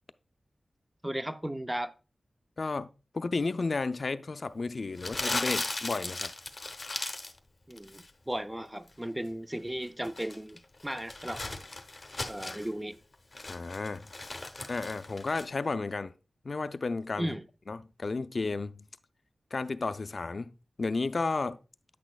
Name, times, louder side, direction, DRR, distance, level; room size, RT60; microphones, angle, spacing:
voice 1, 1.0-1.9 7.7-11.4 12.3-13.0 17.2-17.4, right 1 dB, 10° right, 0.5 m, -35 dB
voice 2, 2.6-6.3 13.5-14.1 14.7-16.1 16.4-17.4 17.7-18.9 19.5-21.6, left 3 dB, 55° left, 0.3 m, -33 dB
Crumpling crinkling, 5.0-7.4 7.7-8.1 9.8-12.7 13.1-15.4, left 2 dB, 35° left, 0.8 m, -37 dB
8.8 x 6.1 x 2.3 m
wide cardioid pair, 85°, 0 cm